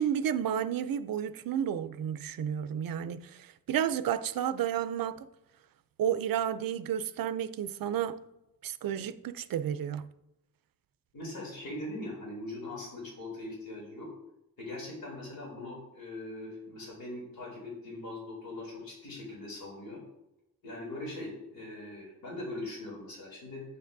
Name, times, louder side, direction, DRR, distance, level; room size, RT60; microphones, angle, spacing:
voice 1, 0.0-5.3 6.0-8.2 8.6-10.1, right 9 dB, 75° right, 0.5 m, -31 dB
voice 2, 11.1-14.1 14.6-20.0 20.6-23.6, left 2 dB, 85° left, 3.1 m, -41 dB
9.0 x 7.6 x 2.6 m
wide cardioid pair, 115°, 35 cm